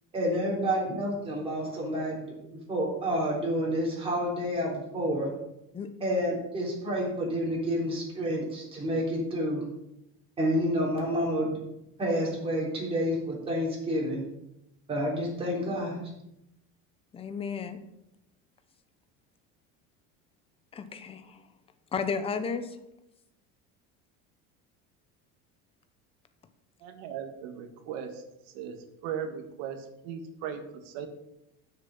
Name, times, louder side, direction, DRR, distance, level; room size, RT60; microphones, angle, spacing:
voice 1, 0.1-5.3 6.0-9.6 10.4-11.6 12.0-14.2 14.9-16.1, equal, 20° right, -3 dB, 3.6 m, -29 dB
voice 2, 17.1-17.8 20.7-21.4 21.9-22.8, left 5 dB, 20° left, 9 dB, 0.8 m, -33 dB
voice 3, 26.8-28.2 28.5-28.8 29.0-31.1, right 8 dB, 85° right, 6 dB, 1.7 m, -37 dB
11.5 x 6.7 x 5.4 m, 0.85 s
cardioid pair, 170°, 30 cm